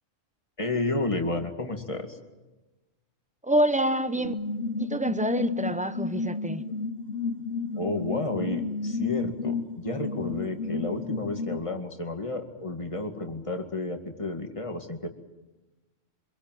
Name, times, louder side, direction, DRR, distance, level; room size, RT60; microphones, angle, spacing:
voice 1, 0.6-2.2 7.8-15.1, left 2 dB, 25° left, 4 dB, 2.2 m, -31 dB
voice 2, 3.4-4.3 4.8-6.6, right 1 dB, 5° right, 11 dB, 0.7 m, -26 dB
sound 1, 4.2-11.6, left 4 dB, 55° left, 1.2 m, -32 dB
25.5 x 23.0 x 7.7 m, 1.1 s
omnidirectional pair, 1.3 m